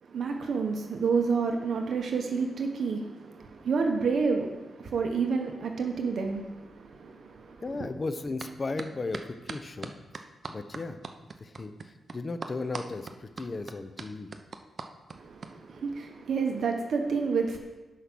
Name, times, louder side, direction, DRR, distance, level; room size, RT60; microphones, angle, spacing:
voice 1, 0.0-7.9 15.1-17.6, right 5 dB, 65° right, 3 dB, 1.1 m, -29 dB
voice 2, 7.6-9.9 10.5-11.0 11.4-14.3, left 3 dB, 35° left, 10 dB, 0.8 m, -35 dB
sound 1, 8.4-8.5 8.8-15.5, right 4 dB, 45° right, 0.8 m, -40 dB
11.5 x 5.7 x 6.2 m, 1.1 s
cardioid pair, 85°, 0 cm